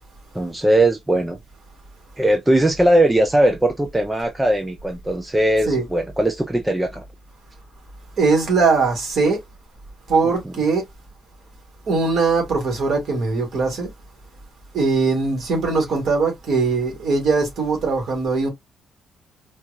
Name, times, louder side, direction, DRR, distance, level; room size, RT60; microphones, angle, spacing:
voice 1, 0.3-1.4 2.2-7.0 10.4-10.5, right 1 dB, 5° right, 0.5 m, -19 dB
voice 2, 8.2-9.4 10.1-10.8 11.9-13.9 14.7-18.5, right 4 dB, 45° right, 2.0 m, -20 dB
4.3 x 2.4 x 2.8 m
cardioid pair, 175°, 0 cm